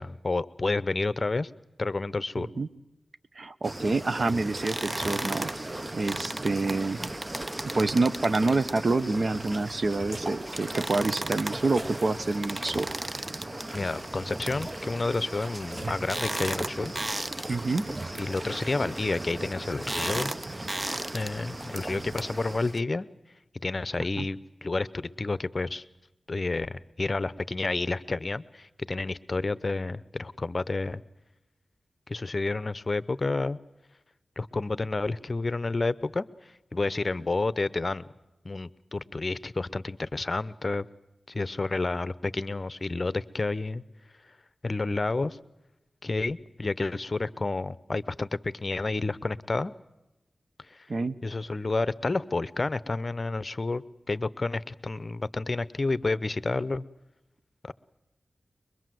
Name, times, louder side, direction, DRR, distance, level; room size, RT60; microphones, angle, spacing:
voice 1, 0.0-1.5 1.8-2.5 13.7-16.9 18.2-20.3 21.1-23.1 23.6-25.8 26.3-31.0 32.1-33.6 34.4-36.2 36.7-38.1 38.4-40.9 41.3-43.8 44.6-45.4 46.0-49.7 50.7-50.9 51.2-53.8 54.1-56.8 57.6-57.7, left 3 dB, 45° left, 17 dB, 0.8 m, -30 dB
voice 2, 2.3-2.7 3.4-5.5 5.9-7.0 7.7-12.9 17.5-17.9 24.2-24.3 50.9-51.2, right 3 dB, 60° right, 13 dB, 1.0 m, -27 dB
sound 1, 3.6-22.8, right 1 dB, 25° right, 0.8 m, -35 dB
23.5 x 22.5 x 7.8 m, 0.94 s
cardioid pair, 60°, 0 cm